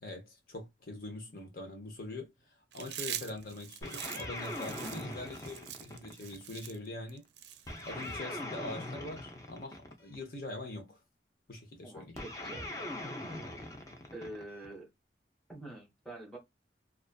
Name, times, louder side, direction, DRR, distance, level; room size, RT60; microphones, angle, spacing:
voice 1, 0.0-2.3 2.7-7.2 7.8-11.0 11.5-12.2, left 2 dB, 50° left, 0.7 m, -43 dB
Chewing mastication, 2.7-8.2, right 10 dB, 70° right, 0.4 m, -43 dB
sound 1, 3.8-6.4 7.7-10.2 12.2-14.7, left 1 dB, 20° left, 0.5 m, -41 dB
voice 2, 11.8-12.7 14.1-14.9 15.5-16.4, right 1 dB, ahead, 1.0 m, -46 dB
2.4 x 2.3 x 2.2 m
head